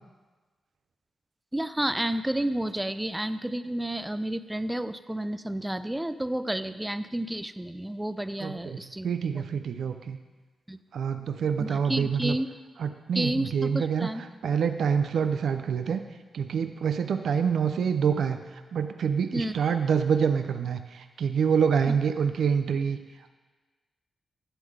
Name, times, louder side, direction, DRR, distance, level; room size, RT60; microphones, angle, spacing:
voice 1, 1.5-9.1 10.7-10.8 11.6-12.5 13.1-14.2 19.3-19.5 21.9-22.0, right 1 dB, 10° right, 12 dB, 0.3 m, -31 dB
voice 2, 8.4-8.8 9.0-10.2 10.9-12.4 12.8-14.1 14.4-16.0 16.3-23.0, right 7 dB, 75° right, 8 dB, 0.4 m, -26 dB
11.0 x 3.8 x 6.4 m, 1.3 s
wide cardioid pair, 115°, 0 cm